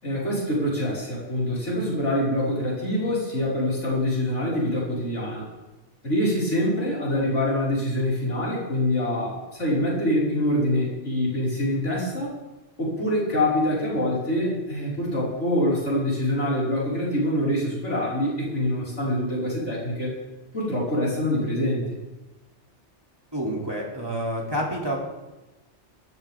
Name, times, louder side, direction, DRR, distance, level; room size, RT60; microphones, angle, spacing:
voice 1, 0.0-5.5 6.0-12.4 12.8-20.1 20.5-21.8, left 1 dB, 85° left, -6 dB, 6.0 m, -25 dB
voice 2, 23.3-25.0, equal, 20° right, -3 dB, 3.3 m, -28 dB
20.0 x 13.5 x 3.7 m, 1.1 s
omnidirectional pair, 1.2 m